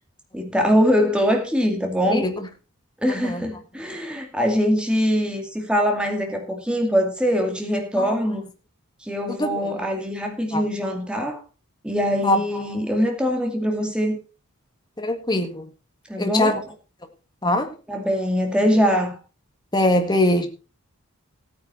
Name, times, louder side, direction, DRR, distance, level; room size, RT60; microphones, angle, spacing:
voice 1, 0.3-2.3 3.0-8.4 9.0-11.4 11.8-14.2 16.1-16.6 17.9-19.2, equal, 5° right, 2.3 m, -22 dB
voice 2, 2.1-2.5 3.2-3.4 8.0-8.1 9.4-9.7 10.5-10.6 12.2-12.4 15.0-15.7 16.2-16.6 17.4-17.7 19.7-20.5, left 1 dB, 20° left, 1.8 m, -22 dB
15.5 x 9.4 x 4.4 m
head